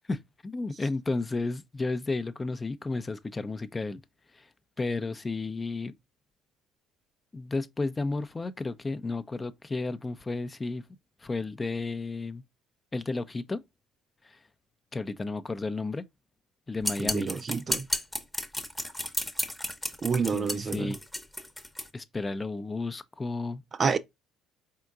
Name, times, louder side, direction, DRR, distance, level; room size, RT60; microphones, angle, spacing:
voice 1, 0.1-4.0 4.3-4.5 4.8-5.9 7.3-10.8 11.2-12.4 12.9-13.6 14.2-14.4 14.9-16.0 16.7-17.3 20.3-21.0 21.9-23.6, left 3 dB, 25° left, 0.5 m, -32 dB
sound 1, 16.8-21.9, left 1 dB, 5° left, 0.9 m, -32 dB
voice 2, 17.0-17.9 20.0-20.9 23.8-24.0, right 5 dB, 35° right, 0.5 m, -28 dB
4.4 x 3.7 x 2.3 m
supercardioid pair, 75°, 0 cm